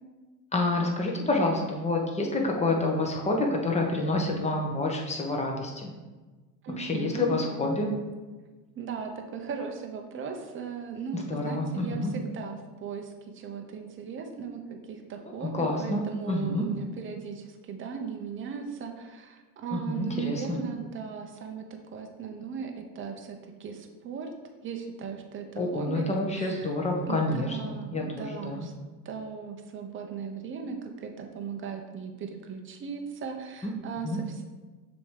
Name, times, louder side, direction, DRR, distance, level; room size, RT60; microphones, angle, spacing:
voice 1, 0.5-5.9 6.8-7.9 11.1-12.1 15.4-16.6 19.7-20.6 25.6-28.7 34.0-34.2, left 2 dB, 15° left, 0 dB, 1.1 m, -28 dB
voice 2, 6.6-7.7 8.8-24.3 24.6-26.1 26.3-26.7 27.1-28.7 29.0-34.4, right 6 dB, 25° right, 3 dB, 0.8 m, -37 dB
6.8 x 3.0 x 5.0 m, 1.3 s
supercardioid pair, 110°, 49 cm